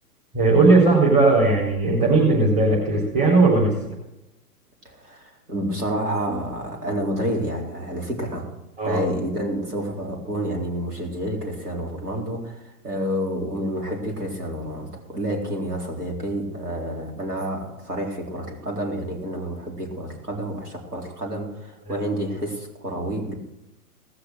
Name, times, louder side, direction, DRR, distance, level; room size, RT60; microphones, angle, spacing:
voice 1, 0.3-3.9 8.8-9.0, right 3 dB, 20° right, -7 dB, 4.3 m, -18 dB
voice 2, 4.8-8.5 8.8-23.4, right 1 dB, 75° right, 0 dB, 4.1 m, -29 dB
19.0 x 6.8 x 6.6 m, 0.93 s
figure-of-eight pair, 115°, 47 cm